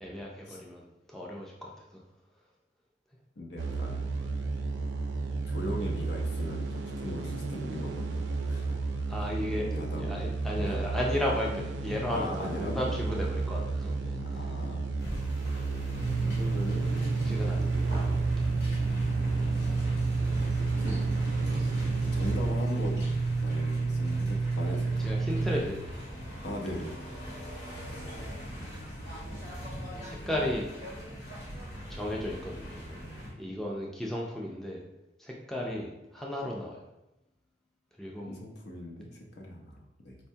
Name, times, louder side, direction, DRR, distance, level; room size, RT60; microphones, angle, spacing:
voice 1, 0.0-2.0 9.1-9.7 10.0-14.7 15.0-15.2 17.2-17.9 19.5-19.8 25.0-26.0 30.0-30.7 31.9-33.1 33.4-34.8 35.2-36.8 38.0-38.3, left 1 dB, ahead, -3 dB, 0.3 m, -35 dB
voice 2, 3.4-4.1 5.5-8.7 9.5-10.2 10.6-10.8 12.1-12.9 14.2-14.9 16.2-17.2 20.8-21.0 22.1-23.0 23.4-25.1 26.4-26.9 35.7-35.8 38.3-40.2, left 1 dB, 70° left, -1 dB, 0.7 m, -39 dB
sound 1, 3.6-22.4, right 3 dB, 80° right, 0.4 m, -33 dB
sound 2, 15.0-33.3, equal, 85° left, 1.3 m, -41 dB
sound 3, 16.0-25.6, right 3 dB, 35° left, 0.8 m, -29 dB
4.3 x 2.2 x 2.7 m, 0.93 s
head